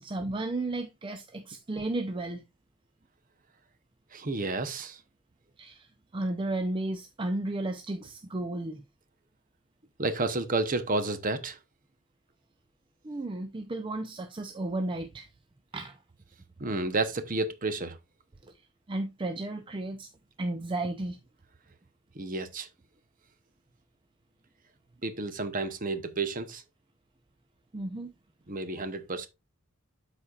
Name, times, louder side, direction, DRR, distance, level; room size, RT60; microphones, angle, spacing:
voice 1, 0.0-2.4 5.6-5.9 6.1-8.8 13.0-15.3 15.7-16.0 18.4-18.5 18.9-20.1 20.4-21.2 27.7-28.1, right 2 dB, 25° right, 0.5 m, -33 dB
voice 2, 4.1-5.0 10.0-11.6 16.6-18.0 22.1-22.7 25.0-26.6 28.5-29.3, right 3 dB, 40° right, 0.9 m, -31 dB
12.5 x 4.3 x 2.4 m
head